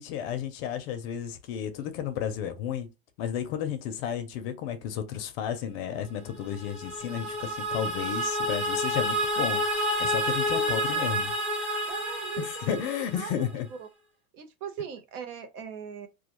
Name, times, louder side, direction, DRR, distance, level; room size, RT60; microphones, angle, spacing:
voice 1, 0.0-2.9 3.2-9.6 10.0-11.3 12.4-13.7, left 9 dB, 45° left, 0.4 m, -32 dB
sound 1, 6.4-13.5, equal, 15° right, 0.5 m, -29 dB
voice 2, 10.6-11.3 11.9-12.9 13.1-13.9 14.3-16.1, right 7 dB, 85° right, 0.8 m, -40 dB
2.3 x 2.2 x 2.9 m
supercardioid pair, 155°, 43 cm